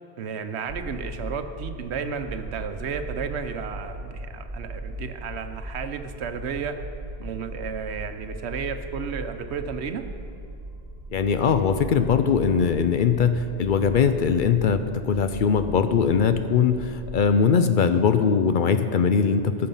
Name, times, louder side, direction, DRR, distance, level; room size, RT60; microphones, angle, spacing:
voice 1, 0.2-6.8 7.2-10.0, right 6 dB, 85° right, 8 dB, 1.0 m, -33 dB
sound 1, 0.7-17.2, right 1 dB, 40° right, 1.5 m, -38 dB
voice 2, 11.1-19.7, left 6 dB, 60° left, 9 dB, 0.6 m, -21 dB
17.0 x 6.7 x 5.4 m, 2.5 s
omnidirectional pair, 1.1 m